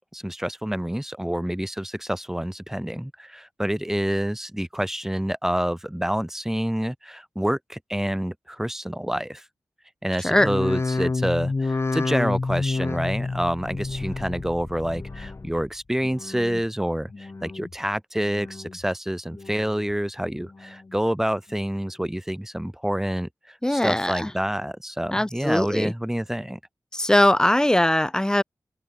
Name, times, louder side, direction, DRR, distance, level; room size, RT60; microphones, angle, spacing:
voice 1, 0.0-9.4 10.0-26.6, equal, 5° right, 2.3 m, -28 dB
sound 1, 10.3-15.7 16.0-16.6 17.1-17.8 18.2-18.8 19.3-19.9 20.4-21.0 21.5-21.6, left 3 dB, 40° left, 1.1 m, -30 dB
voice 2, 23.6-24.3 25.1-25.9 26.9-28.4, left 1 dB, 10° left, 1.8 m, -21 dB
wide cardioid pair, 70°, 7 cm